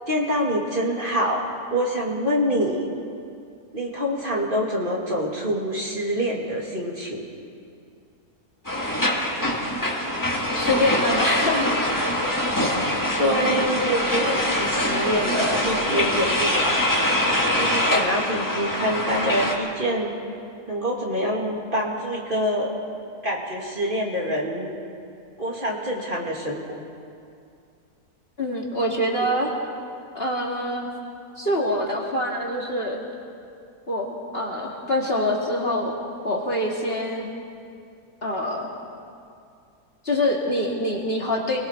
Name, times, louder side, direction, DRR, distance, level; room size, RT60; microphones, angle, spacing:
voice 1, 0.1-2.9 3.7-7.2 12.6-16.8 17.5-20.1 20.7-22.8 23.2-24.7 25.4-26.6 29.2-29.3, equal, 30° right, -3 dB, 2.6 m, -26 dB
sound 1, 8.6-19.5, left 1 dB, 10° left, 2.1 m, -24 dB
voice 2, 10.5-11.7 28.4-29.5 30.1-30.9 31.4-33.0 33.9-35.9 36.2-37.3 38.2-38.7 40.0-41.6, left 1 dB, 35° left, -2 dB, 2.3 m, -25 dB
29.0 x 20.5 x 4.5 m, 2.4 s
omnidirectional pair, 1.7 m